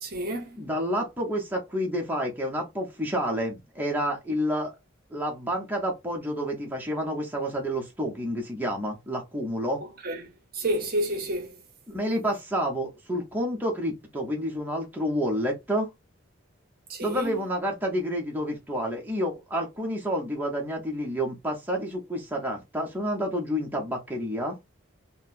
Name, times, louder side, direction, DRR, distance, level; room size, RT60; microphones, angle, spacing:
voice 1, 0.0-0.6 10.0-11.6 16.9-17.4, right 1 dB, 45° right, 0.7 m, -30 dB
voice 2, 0.6-4.7 5.1-9.8 11.9-15.9 17.0-24.6, equal, 10° right, 0.7 m, -29 dB
4.1 x 2.1 x 2.5 m
head